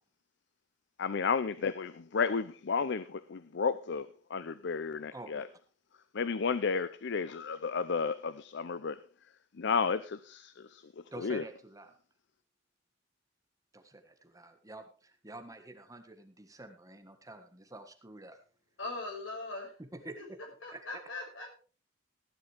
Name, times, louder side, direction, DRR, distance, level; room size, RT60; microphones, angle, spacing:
voice 1, 1.0-5.4 6.1-9.0 9.6-10.9 11.2-11.4, left 5 dB, 65° left, 0.6 m, -32 dB
voice 2, 5.1-5.4 11.1-12.0 13.7-18.4 19.9-20.4 20.7-20.9, right 2 dB, 20° right, 1.5 m, -48 dB
voice 3, 18.8-19.7 20.2-20.3 20.6-21.5, left 2 dB, 80° left, 5.3 m, -40 dB
16.0 x 10.5 x 3.4 m
head